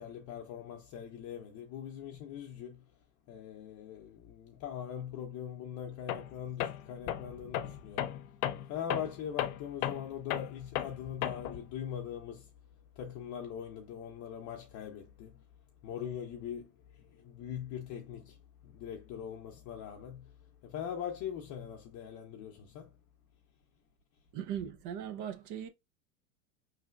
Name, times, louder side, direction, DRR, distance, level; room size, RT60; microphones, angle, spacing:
voice 1, 0.0-2.9 3.3-8.2 8.7-12.5 13.0-15.4 15.8-20.4 20.6-23.0, left 9 dB, 40° left, 0.8 m, -42 dB
Tools, 6.1-6.3 6.6-11.6, left 12 dB, 75° left, 0.7 m, -35 dB
voice 2, 24.3-25.7, right 9 dB, 45° right, 0.7 m, -39 dB
4.8 x 3.2 x 2.4 m
supercardioid pair, 115°, 44 cm